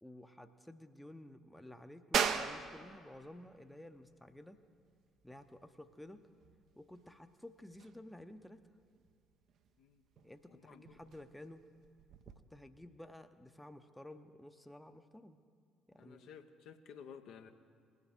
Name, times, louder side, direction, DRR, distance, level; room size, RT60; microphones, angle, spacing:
voice 1, 0.0-4.6 5.2-6.3 6.8-8.7 10.2-11.6 12.4-15.4 15.9-16.3, left 1 dB, 5° left, 9 dB, 0.7 m, -53 dB
sound 1, 2.1-12.4, right 7 dB, 55° right, 0.7 m, -42 dB
voice 2, 10.5-11.0 16.0-17.5, left 7 dB, 60° left, 6 dB, 0.7 m, -54 dB
20.0 x 9.8 x 3.5 m, 2.2 s
figure-of-eight pair, 50°, 0 cm